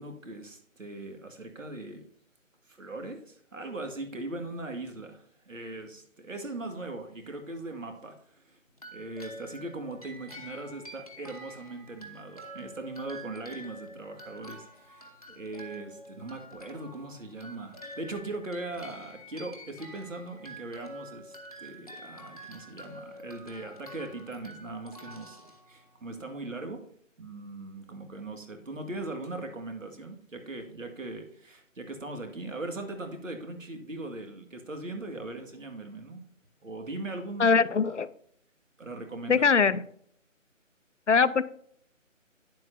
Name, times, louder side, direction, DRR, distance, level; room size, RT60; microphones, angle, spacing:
voice 1, 0.0-2.1 2.7-8.6 8.9-26.8 27.2-36.3 36.6-37.6 38.8-39.5, right 2 dB, 75° right, 5 dB, 2.0 m, -40 dB
sound 1, 8.7-26.2, equal, 30° left, 0.9 m, -48 dB
voice 2, 37.4-38.1 39.3-39.8 41.1-41.4, left 5 dB, 65° left, 16 dB, 0.5 m, -22 dB
9.7 x 7.6 x 2.6 m, 0.65 s
figure-of-eight pair, 180°, 39 cm